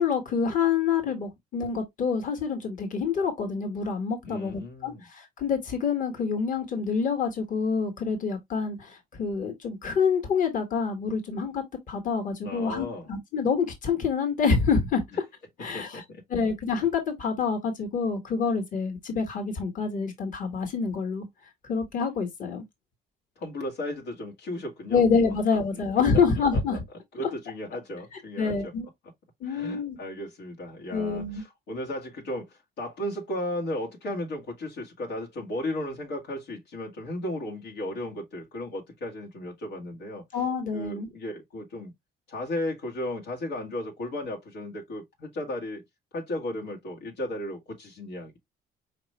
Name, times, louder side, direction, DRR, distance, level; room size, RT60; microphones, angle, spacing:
voice 1, 0.0-15.0 15.6-16.0 16.3-21.3 21.7-22.6 24.9-26.8 28.4-28.9 29.4-30.0 30.9-31.4 40.3-41.1, left 5 dB, 50° left, 1.7 m, -27 dB
voice 2, 4.2-5.1 12.4-13.1 15.7-16.2 23.4-25.0 26.5-26.8 27.1-28.7 29.4-40.2 40.7-41.9 42.3-45.8 46.1-48.4, left 1 dB, 90° left, 1.9 m, -35 dB
5.1 x 3.0 x 3.1 m
cardioid pair, 110°, 17 cm